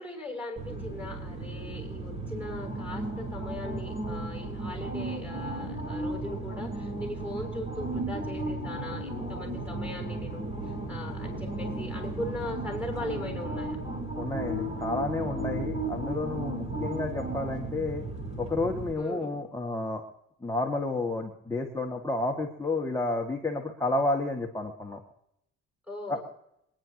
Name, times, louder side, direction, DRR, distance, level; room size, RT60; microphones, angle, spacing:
voice 1, 0.0-13.8 19.0-19.3 25.9-26.3, left 1 dB, 5° right, 2 dB, 6.9 m, -39 dB
sound 1, 0.6-18.9, right 2 dB, 20° right, 4.2 m, -35 dB
voice 2, 14.1-18.0 18.4-20.0 20.4-25.0 26.1-26.2, left 2 dB, 10° left, 0 dB, 2.3 m, -31 dB
26.0 x 10.5 x 3.1 m, 0.77 s
cardioid pair, 90°, 30 cm